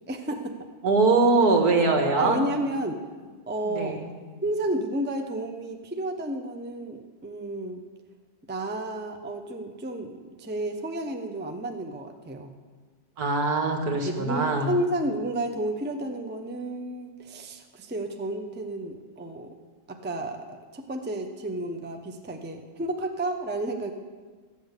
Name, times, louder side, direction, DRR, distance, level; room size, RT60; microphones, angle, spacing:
voice 1, 0.1-0.5 2.2-3.0 3.5-4.0 4.4-7.8 8.5-12.5 14.0-19.5 19.9-23.9, right 1 dB, 10° right, 5 dB, 0.5 m, -31 dB
voice 2, 0.8-2.4 3.6-4.1 13.2-14.7, right 3 dB, 80° right, 3 dB, 2.1 m, -22 dB
14.0 x 6.6 x 8.2 m, 1.5 s
omnidirectional pair, 1.6 m